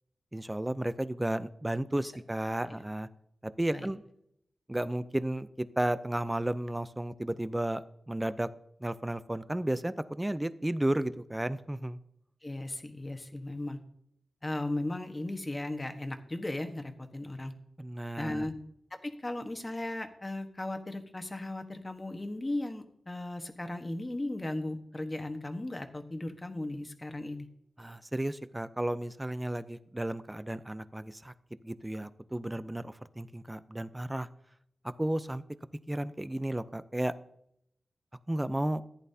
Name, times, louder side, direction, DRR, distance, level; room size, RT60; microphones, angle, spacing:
voice 1, 0.3-3.1 3.4-4.0 4.7-7.8 8.1-8.5 8.8-12.0 17.8-18.5 27.8-31.3 31.6-34.3 34.8-35.4 35.9-37.1 38.3-38.8, right 1 dB, 15° right, 14 dB, 0.6 m, -33 dB
voice 2, 12.4-13.8 14.4-17.5 18.2-18.5 19.0-27.5, left 1 dB, 25° left, 6 dB, 1.2 m, -36 dB
14.5 x 10.5 x 2.8 m, 0.73 s
wide cardioid pair, 85°, 0 cm